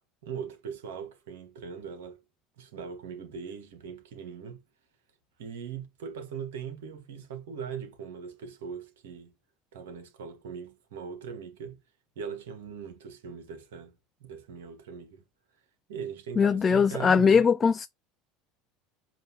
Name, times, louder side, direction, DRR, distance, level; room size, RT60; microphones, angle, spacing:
voice 1, 0.2-2.2 2.6-4.6 5.4-9.3 9.7-11.8 12.2-15.2 15.9-17.4, right 7 dB, 70° right, 1.9 m, -40 dB
voice 2, 16.4-17.9, left 6 dB, 25° left, 0.6 m, -21 dB
7.6 x 3.1 x 5.6 m
figure-of-eight pair, 70°, 0 cm